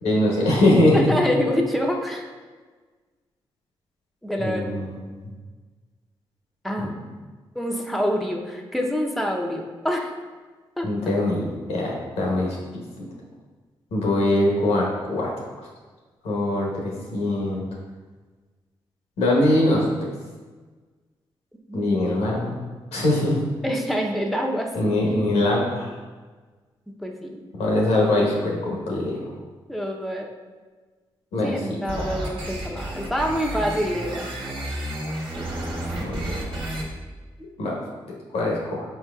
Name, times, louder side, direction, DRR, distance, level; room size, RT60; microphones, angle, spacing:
voice 1, 0.0-1.2 4.4-5.3 6.8-6.9 10.8-11.4 11.7-12.6 13.9-15.3 16.2-17.7 19.2-20.1 21.7-22.5 22.9-23.4 24.7-26.0 27.6-29.3 31.3-31.6 32.0-32.1 36.0-36.4 37.6-37.7 38.3-38.8, left 1 dB, 90° left, -3 dB, 1.0 m, -22 dB
voice 2, 0.9-2.3 4.2-4.7 6.6-6.9 7.5-10.1 10.8-10.9 21.7-22.1 23.6-24.7 27.0-27.4 29.7-30.3 31.4-34.3 35.4-35.5, equal, ahead, 0 dB, 0.6 m, -26 dB
sound 1, 31.9-36.8, right 1 dB, 50° right, 1.2 m, -31 dB
4.5 x 4.4 x 2.3 m, 1.4 s
supercardioid pair, 50°, 11 cm